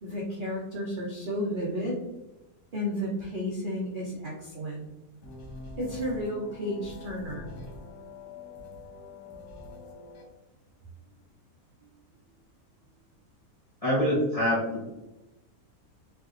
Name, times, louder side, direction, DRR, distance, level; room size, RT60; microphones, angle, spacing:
voice 1, 0.0-2.0 2.7-4.8 5.8-7.5, equal, 85° right, -3 dB, 0.4 m, -32 dB
sound 1, 5.2-10.2, left 2 dB, 75° left, 1.2 m, -44 dB
voice 2, 13.8-14.8, equal, 30° left, -8 dB, 0.8 m, -25 dB
3.3 x 2.8 x 2.4 m, 0.97 s
omnidirectional pair, 1.7 m